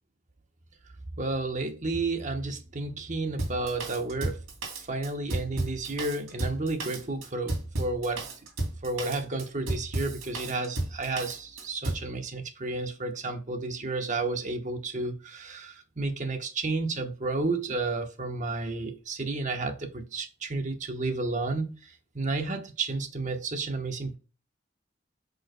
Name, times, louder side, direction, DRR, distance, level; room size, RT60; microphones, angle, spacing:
voice 1, 1.2-4.4 4.9-8.2 8.8-24.2, right 3 dB, 40° right, 1.0 m, -31 dB
Drum kit, 3.4-12.1, right 2 dB, 90° right, 2.7 m, -33 dB
8.0 x 5.4 x 2.2 m
head